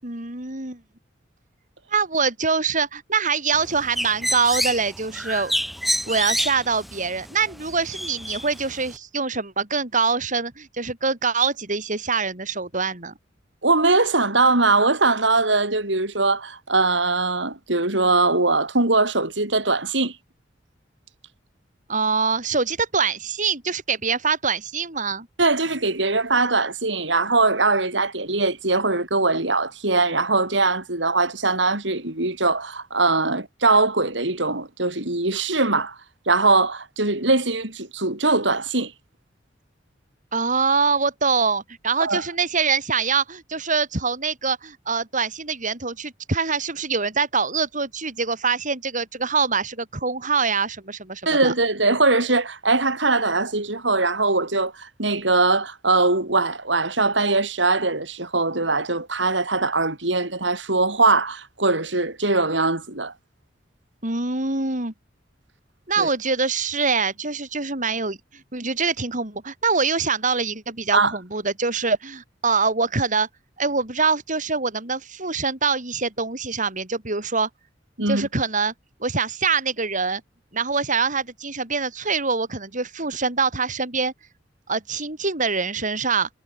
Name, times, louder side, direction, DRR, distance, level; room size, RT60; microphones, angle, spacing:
voice 1, 0.0-0.8 1.9-5.5 6.1-13.1 21.9-25.3 40.3-51.5 64.0-64.9 65.9-73.3 73.6-77.5 78.1-78.7 79.0-80.2 80.5-84.1 84.7-86.3, right 4 dB, 45° right, 5.1 m, -24 dB
Bird, 3.5-9.0, equal, ahead, 5.0 m, -28 dB
voice 2, 13.6-20.1 25.4-36.0 36.3-38.9 42.0-42.2 51.3-63.1 66.0-66.1 70.9-71.2 78.0-78.3, right 3 dB, 75° right, 5.7 m, -21 dB
head